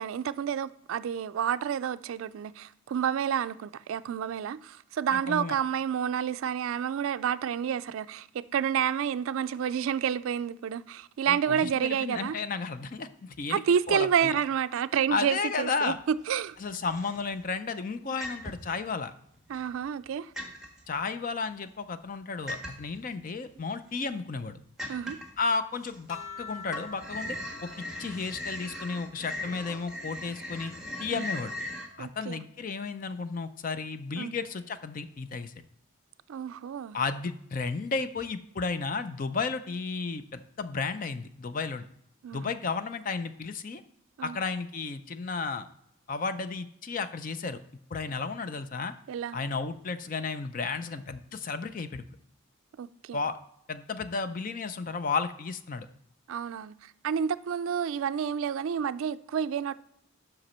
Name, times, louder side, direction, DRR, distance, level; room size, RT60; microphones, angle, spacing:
voice 1, 0.0-12.4 13.5-16.6 18.1-18.2 19.5-20.3 24.9-25.2 31.1-31.2 32.0-32.4 34.2-34.4 36.3-37.0 42.2-42.5 44.2-44.4 49.1-49.4 52.8-53.2 56.3-59.7, right 8 dB, 75° right, 0.3 m, -29 dB
voice 2, 5.1-5.5 11.3-13.6 13.9-14.4 15.1-16.0 16.6-19.1 20.9-24.6 25.4-27.4 27.6-27.7 28.0-30.7 31.0-31.5 32.0-35.5 36.9-41.9 42.3-43.8 44.2-45.7 46.1-47.6 47.9-48.9 49.3-52.1 53.1-53.4 53.7-55.9, left 4 dB, 40° left, 0.4 m, -33 dB
sound 1, 16.0-16.5 16.8-17.5 18.2-18.8 19.3-20.1 20.3-20.8 22.5-23.0 23.6-23.7 24.1-24.2 24.8-25.4 25.8-26.4 26.6-31.9, left 1 dB, 5° right, 1.3 m, -39 dB
sound 2, 26.1-30.9 31.3-33.1 34.3-34.8, left 5 dB, 80° left, 1.0 m, -49 dB
7.8 x 6.0 x 4.3 m
head